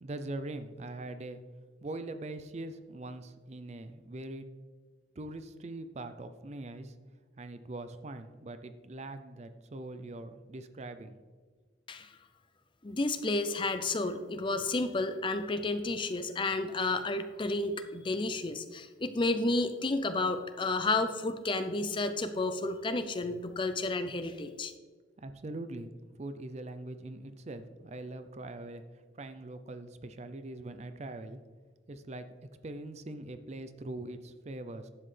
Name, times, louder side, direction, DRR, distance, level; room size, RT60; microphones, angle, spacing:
voice 1, 0.0-1.4 1.8-4.5 5.2-6.9 7.4-11.2 25.2-25.9 26.2-31.4 31.9-34.9, right 2 dB, 35° right, 10 dB, 0.5 m, -42 dB
voice 2, 12.8-24.7, left 2 dB, 25° left, 9 dB, 0.5 m, -31 dB
11.0 x 7.8 x 3.3 m, 1.5 s
head